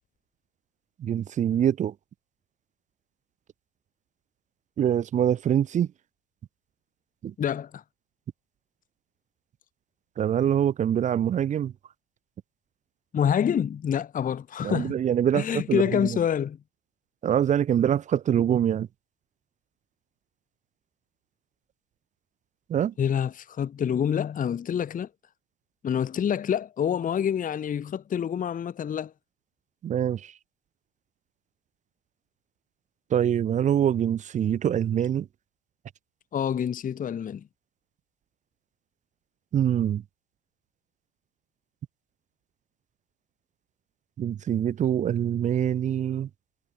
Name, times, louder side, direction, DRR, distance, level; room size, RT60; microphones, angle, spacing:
voice 1, 1.0-1.9 4.8-5.9 7.2-7.3 10.2-11.7 14.6-16.2 17.2-18.9 22.7-22.9 29.8-30.3 33.1-35.3 39.5-40.0 44.2-46.3, right 9 dB, 20° right, 0.4 m, -24 dB
voice 2, 7.4-7.8 13.1-15.0 15.3-16.6 23.0-25.1 25.8-29.1 36.3-37.4, left 8 dB, 20° left, 0.8 m, -27 dB
hypercardioid pair, 85°, 37 cm